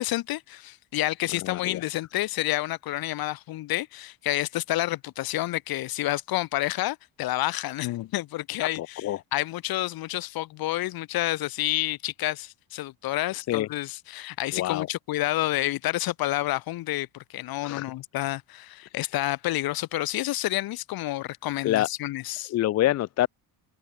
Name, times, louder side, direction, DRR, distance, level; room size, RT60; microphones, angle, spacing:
voice 1, 0.0-9.0 9.3-22.5, left 16 dB, 65° left, 1.6 m, -29 dB
voice 2, 1.4-1.8 8.7-9.2 13.3-13.7 14.5-14.9 17.6-17.9 21.6-21.9 22.5-23.3, left 14 dB, 40° left, 0.5 m, -26 dB
cardioid pair, 160°, 40 cm